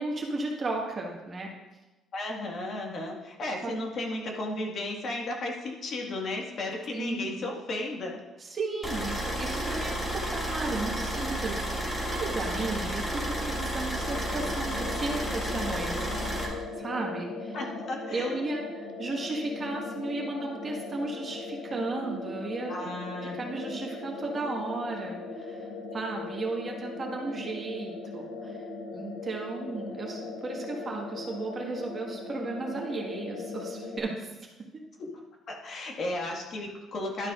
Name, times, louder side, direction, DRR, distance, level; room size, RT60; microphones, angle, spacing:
voice 1, 0.0-1.5 3.6-3.7 6.9-7.4 8.4-17.6 18.1-22.8 23.3-28.6 28.9-34.3, right 3 dB, 30° right, 0 dB, 1.5 m, -35 dB
voice 2, 2.1-8.2 17.5-18.3 22.7-23.4 35.0-35.1 35.5-37.3, left 2 dB, 45° left, 0 dB, 1.7 m, -34 dB
sound 1, 8.8-16.4, equal, 15° left, 2.3 m, -32 dB
sound 2, 14.0-34.0, left 3 dB, 75° left, 1.1 m, -39 dB
11.5 x 9.3 x 2.5 m, 1.1 s
cardioid pair, 140°, 0 cm